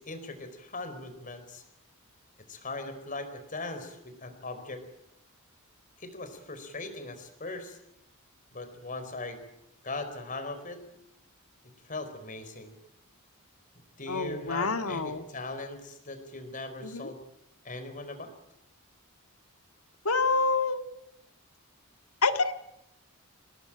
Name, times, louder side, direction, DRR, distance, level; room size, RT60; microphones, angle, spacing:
voice 1, 0.0-1.6 2.5-4.8 6.0-7.8 8.5-9.4 9.8-11.0 11.8-12.7 14.0-17.2 17.6-18.3, left 2 dB, 40° left, 9 dB, 4.4 m, -39 dB
voice 2, 14.1-15.2 16.8-17.1 20.1-20.8 22.2-22.5, left 3 dB, 85° left, 8 dB, 2.0 m, -27 dB
26.0 x 19.0 x 9.0 m, 0.82 s
head